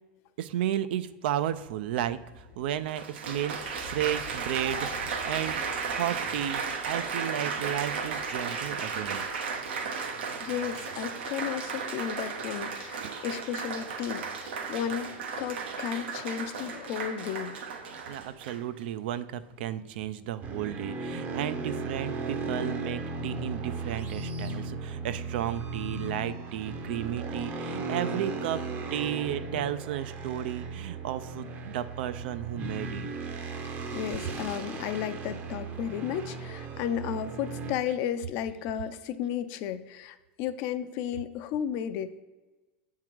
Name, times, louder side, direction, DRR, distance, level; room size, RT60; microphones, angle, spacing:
voice 1, 0.4-5.6 5.9-9.2 13.0-13.1 18.1-28.6 28.9-33.1, right 11 dB, 70° right, 13 dB, 0.4 m, -33 dB
sound 1, 1.7-9.9, left 6 dB, 85° left, 0.9 m, -51 dB
Applause, 2.9-18.8 19.5-19.9, right 5 dB, 90° right, 1.0 m, -35 dB
voice 2, 10.4-17.6 33.9-42.1, left 9 dB, 50° left, 11 dB, 0.5 m, -33 dB
sound 2, 20.4-37.7, right 3 dB, 30° right, 0.7 m, -36 dB
7.6 x 3.7 x 4.6 m, 1.2 s
supercardioid pair, 145°, 6 cm